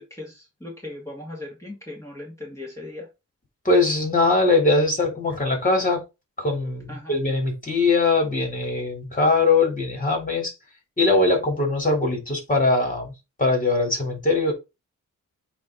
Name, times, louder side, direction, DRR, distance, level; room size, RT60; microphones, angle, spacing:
voice 1, 0.0-3.1 6.9-7.2, left 2 dB, 10° left, 2.3 m, -38 dB
voice 2, 3.6-6.0 6.4-10.5 11.0-13.1 13.4-14.5, left 3 dB, 25° left, 3.2 m, -21 dB
8.3 x 3.2 x 3.8 m
cardioid pair, 95°, 32 cm